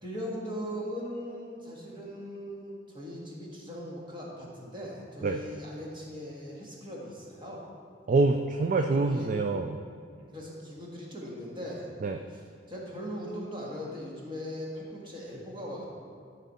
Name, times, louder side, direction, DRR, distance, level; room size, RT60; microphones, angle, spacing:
voice 1, 0.0-7.7 8.8-9.3 10.2-11.9 12.3-15.9, equal, 25° right, -4 dB, 1.7 m, -39 dB
voice 2, 8.1-9.8 12.0-12.2, right 3 dB, 45° right, 5 dB, 0.3 m, -26 dB
13.0 x 5.2 x 4.1 m, 2.1 s
head